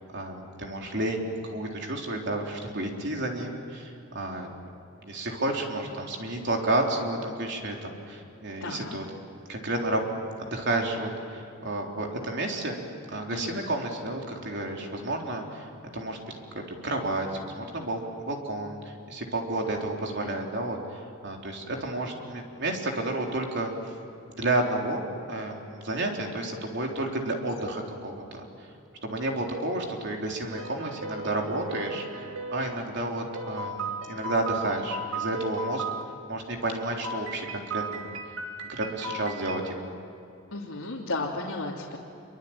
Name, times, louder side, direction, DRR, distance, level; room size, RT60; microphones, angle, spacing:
voice 1, 0.1-4.5 5.0-9.0 9.5-10.0 10.4-12.8 13.1-15.7 15.9-23.7 24.4-28.4 29.0-35.8 36.3-38.1 38.6-40.0, right 2 dB, 55° right, 1 dB, 3.9 m, -31 dB
voice 2, 8.6-9.0 13.3-13.7 40.5-42.0, left 2 dB, 75° left, -4 dB, 2.9 m, -33 dB
sound 1, 30.5-32.8 33.3-36.0 37.0-39.7, right 2 dB, 70° right, 2.2 m, -36 dB
27.0 x 24.0 x 9.0 m, 2.7 s
head